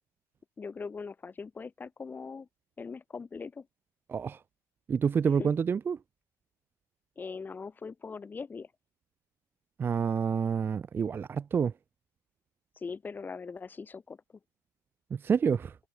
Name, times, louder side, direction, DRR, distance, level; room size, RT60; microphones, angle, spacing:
voice 1, 0.6-2.5 2.8-3.7 5.4-5.5 7.2-8.7 12.8-14.2, left 5 dB, 20° left, 2.1 m, -40 dB
voice 2, 4.1-4.4 4.9-6.0 9.8-11.7 15.1-15.8, right 6 dB, 25° right, 0.5 m, -28 dB
supercardioid pair, 110°, 9 cm